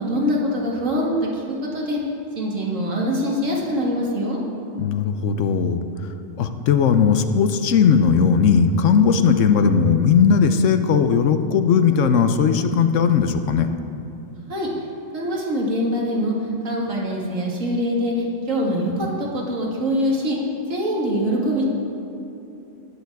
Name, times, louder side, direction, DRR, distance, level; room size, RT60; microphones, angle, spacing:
voice 1, 0.0-2.0 2.4-4.4 14.5-14.7 15.1-16.3 16.6-20.4 20.7-21.6, equal, 80° right, -3 dB, 2.3 m, -23 dB
voice 2, 4.8-5.8 6.4-13.7, left 6 dB, 75° left, 9 dB, 1.0 m, -17 dB
18.5 x 7.0 x 4.7 m, 2.8 s
omnidirectional pair, 1.3 m